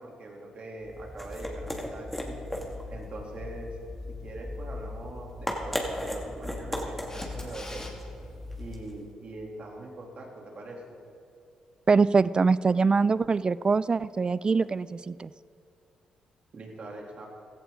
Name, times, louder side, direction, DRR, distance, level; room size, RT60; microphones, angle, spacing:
voice 1, 0.0-2.4 2.9-3.8 4.1-7.9 8.6-10.8 16.5-17.3, right 2 dB, 55° right, -1 dB, 3.1 m, -42 dB
sound 1, 0.8-9.0, left 1 dB, 5° left, 2.5 m, -36 dB
Camera, 7.1-7.9 14.6-14.7, left 2 dB, 25° left, 2.9 m, -43 dB
voice 2, 11.9-15.3, right 4 dB, 35° right, 18 dB, 0.4 m, -23 dB
16.5 x 14.0 x 3.9 m, 2.5 s
supercardioid pair, 55°, 2 cm